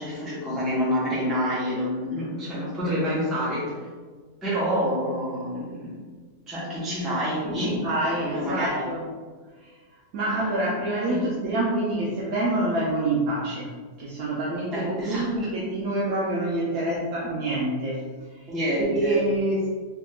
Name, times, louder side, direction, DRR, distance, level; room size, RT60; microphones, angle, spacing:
voice 1, 0.0-3.7 4.4-5.9 6.5-8.9 11.1-11.2 14.7-15.3 18.5-19.2, equal, ahead, -9 dB, 0.5 m, -28 dB
voice 2, 7.4-9.0 9.6-9.7 10.1-13.7 14.0-18.0 18.9-19.7, right 1 dB, 70° right, -5 dB, 0.9 m, -26 dB
3.3 x 2.7 x 2.3 m, 1.4 s
omnidirectional pair, 1.8 m